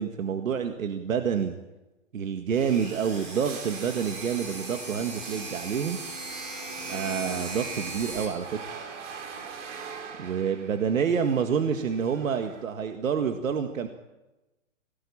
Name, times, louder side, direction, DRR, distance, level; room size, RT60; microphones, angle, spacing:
voice 1, 0.0-1.5 2.1-6.0 6.9-8.5 10.2-13.9, right 7 dB, 85° right, 6 dB, 2.0 m, -28 dB
sound 1, 2.5-8.2, right 2 dB, 20° right, 5.1 m, -38 dB
sound 2, 2.8-12.6, right 6 dB, 65° right, 4.1 m, -44 dB
24.0 x 19.0 x 8.7 m, 1.1 s
hypercardioid pair, 160°, 39 cm